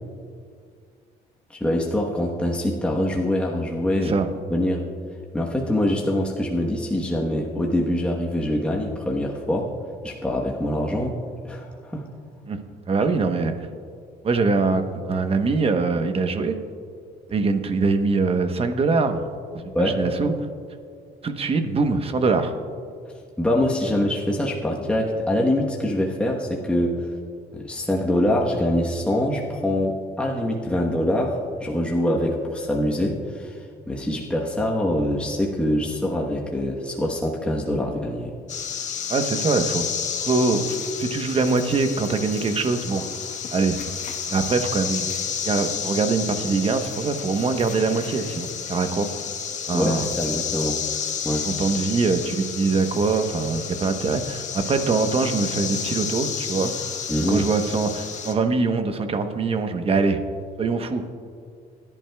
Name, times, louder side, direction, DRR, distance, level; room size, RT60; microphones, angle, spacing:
voice 1, 1.5-4.1 4.5-4.8 5.3-9.7 10.0-12.1 19.7-20.0 23.4-27.1 27.5-38.3 49.7-50.8 51.2-51.5 57.1-57.4, left 1 dB, 5° left, -1 dB, 1.1 m, -24 dB
voice 2, 3.9-4.3 12.5-12.6 12.9-13.5 14.2-16.5 17.3-19.2 19.5-20.3 21.2-22.5 39.1-39.8 40.2-43.0 43.5-43.8 44.3-45.1 45.4-49.1 49.7-50.1 51.4-56.7 57.3-60.2 60.6-61.0, right 4 dB, 35° right, 7 dB, 1.0 m, -23 dB
sound 1, 38.5-58.3, left 7 dB, 45° left, 1.2 m, -31 dB
21.5 x 11.0 x 2.3 m, 2.2 s
cardioid pair, 110°, 17 cm